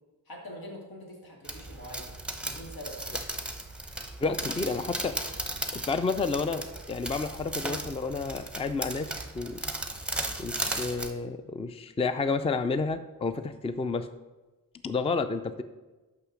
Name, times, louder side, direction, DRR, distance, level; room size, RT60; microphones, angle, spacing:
voice 1, 0.3-3.2, equal, 85° left, -2 dB, 2.4 m, -44 dB
sound 1, 1.4-11.1, right 2 dB, 5° right, 0.8 m, -36 dB
voice 2, 4.2-5.2 5.7-9.1 9.3-9.6 10.4-14.1 14.8-15.6, left 4 dB, 15° left, 11 dB, 0.4 m, -30 dB
6.8 x 5.8 x 6.1 m, 1.2 s
wide cardioid pair, 105°, 35 cm